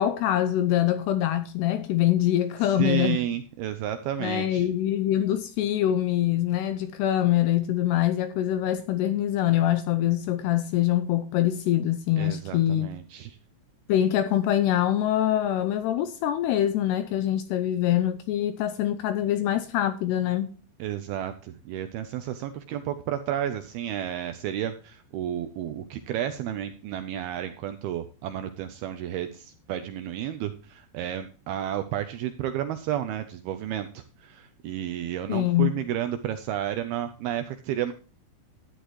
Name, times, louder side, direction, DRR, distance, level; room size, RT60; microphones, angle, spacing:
voice 1, 0.0-3.2 4.2-12.9 13.9-20.5 35.3-35.7, left 12 dB, 80° left, 2.4 m, -24 dB
voice 2, 2.6-4.7 12.2-13.4 20.8-37.9, right 11 dB, 85° right, 2.2 m, -32 dB
13.0 x 10.0 x 3.1 m
omnidirectional pair, 5.4 m